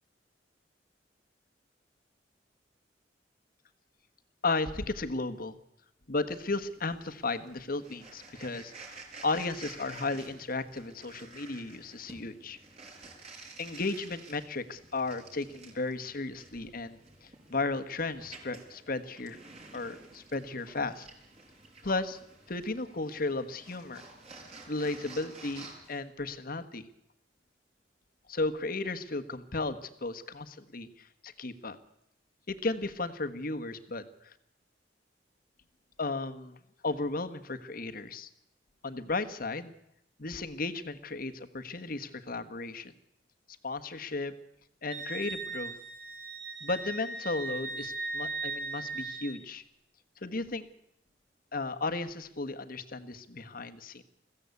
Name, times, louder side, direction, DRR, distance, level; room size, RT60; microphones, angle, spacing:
voice 1, 4.4-5.6 6.1-12.6 13.6-19.4 19.7-21.1 21.8-22.2 22.5-24.1 24.7-26.9 28.3-31.8 32.5-34.3 36.0-36.6 36.8-38.3 38.8-39.8 40.2-42.9 43.6-44.3 44.8-45.8 46.6-49.6 50.2-50.7 51.5-54.0, left 3 dB, 55° left, 9 dB, 1.4 m, -34 dB
sound 1, 6.3-26.0, right 3 dB, 35° right, 5.9 m, -51 dB
Wind instrument woodwind instrument, 44.9-49.4, right 3 dB, 75° right, 3.5 m, -38 dB
22.0 x 15.5 x 8.3 m, 0.78 s
head